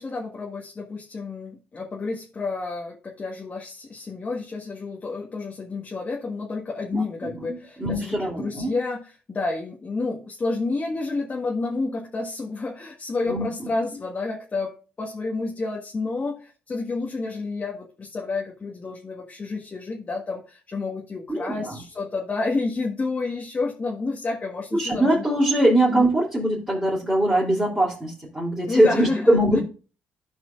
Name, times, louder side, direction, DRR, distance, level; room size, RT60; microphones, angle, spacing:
voice 1, 0.0-25.3 25.9-26.1 28.7-29.6, left 3 dB, 35° left, -1 dB, 1.5 m, -30 dB
voice 2, 6.9-8.7 13.3-13.7 21.3-21.8 24.7-29.6, right 1 dB, 15° right, -6 dB, 2.9 m, -22 dB
14.0 x 4.8 x 2.4 m, 0.35 s
supercardioid pair, 65°, 5 cm